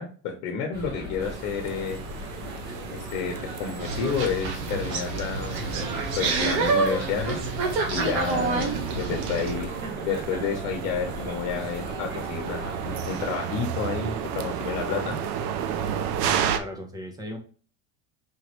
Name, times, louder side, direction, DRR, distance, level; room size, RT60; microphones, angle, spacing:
voice 1, 0.0-2.0 2.9-5.8 6.2-7.4 7.9-9.7 10.0-15.1, left 6 dB, 60° left, 2 dB, 1.0 m, -30 dB
sound 1, 0.7-13.4, left 1 dB, 25° right, 1.2 m, -39 dB
sound 2, 1.2-16.6, right 8 dB, 50° right, 0.5 m, -33 dB
sound 3, 3.8-9.5, right 4 dB, 80° right, 1.3 m, -28 dB
voice 2, 14.9-15.2 16.6-17.4, equal, 10° right, 4 dB, 0.7 m, -37 dB
5.1 x 3.1 x 3.0 m, 0.40 s
cardioid pair, 175°, 37 cm